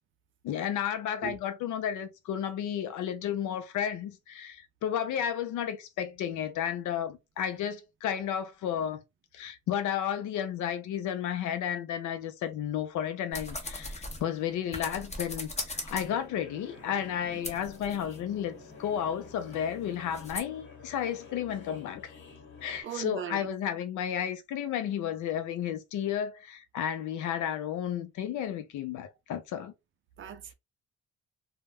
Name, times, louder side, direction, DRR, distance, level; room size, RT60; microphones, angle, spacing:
voice 1, 0.4-9.0 9.3-22.1 22.6-29.7, left 9 dB, 80° left, 0.5 m, -32 dB
sound 1, 13.3-16.3 16.8-20.4, left 2 dB, 20° left, 0.8 m, -41 dB
sound 2, 16.0-22.8, left 4 dB, 40° left, 1.1 m, -50 dB
voice 2, 22.8-23.5 30.2-30.5, right 9 dB, 40° right, 0.5 m, -38 dB
2.2 x 2.1 x 3.3 m
cardioid pair, 90°, 30 cm